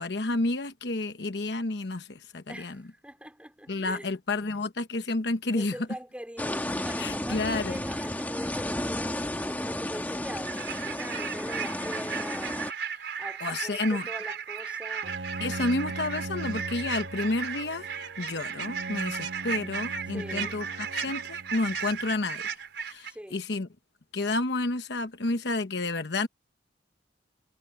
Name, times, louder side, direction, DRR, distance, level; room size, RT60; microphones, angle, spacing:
voice 1, 0.0-2.8 3.7-5.7 7.0-7.8 13.4-14.1 15.4-17.9 18.2-20.7 20.9-22.5 22.8-23.7 24.1-26.3, left 2 dB, 65° left, 1.1 m, -30 dB
voice 2, 2.5-4.1 5.5-12.8 13.2-15.2 15.5-15.6 20.1-20.6 23.1-23.4, equal, 5° right, 4.5 m, -42 dB
sound 1, 6.4-12.7, left 1 dB, 10° left, 1.6 m, -32 dB
sound 2, 10.5-23.1, right 7 dB, 65° right, 4.6 m, -35 dB
Bowed string instrument, 15.0-22.1, right 2 dB, 85° right, 1.4 m, -40 dB
head